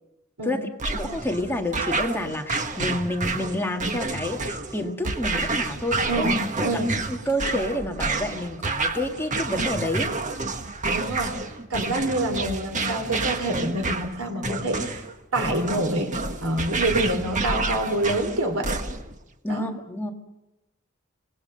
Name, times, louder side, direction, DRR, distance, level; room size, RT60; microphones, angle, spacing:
voice 1, 0.4-6.3 6.7-6.8 7.1-10.1 19.4-20.1, left 1 dB, 10° left, 2 dB, 1.8 m, -29 dB
sound 1, 0.8-19.2, right 3 dB, 35° right, 1.5 m, -29 dB
voice 2, 6.6-6.9 10.9-11.4 11.7-15.1 15.3-18.8 19.5-19.6, right 1 dB, 90° right, 6 dB, 3.4 m, -26 dB
27.0 x 19.0 x 6.7 m, 0.94 s
head